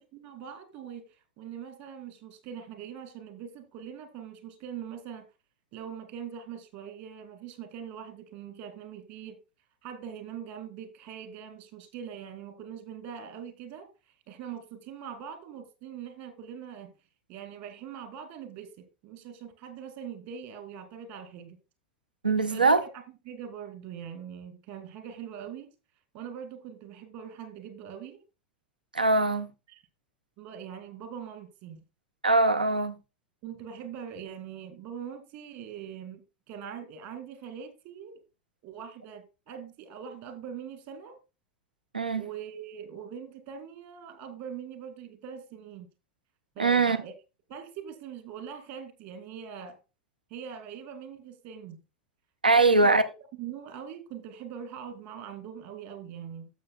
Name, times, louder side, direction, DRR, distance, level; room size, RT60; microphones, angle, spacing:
voice 1, 0.0-5.2 5.7-9.4 9.8-16.9 17.3-21.6 22.5-25.7 26.1-28.2 29.7-29.8 30.4-31.8 33.4-36.2 36.5-38.2 38.6-41.2 42.1-45.9 46.6-47.1 47.5-49.8 50.3-51.8 52.5-53.0 53.3-56.5, right 8 dB, 50° right, 2.2 m, -42 dB
voice 2, 22.2-22.8 28.9-29.5 32.2-32.9 41.9-42.3 46.6-47.0 52.4-53.0, right 3 dB, 85° right, 0.7 m, -22 dB
12.0 x 7.4 x 2.4 m
figure-of-eight pair, 80°, 5 cm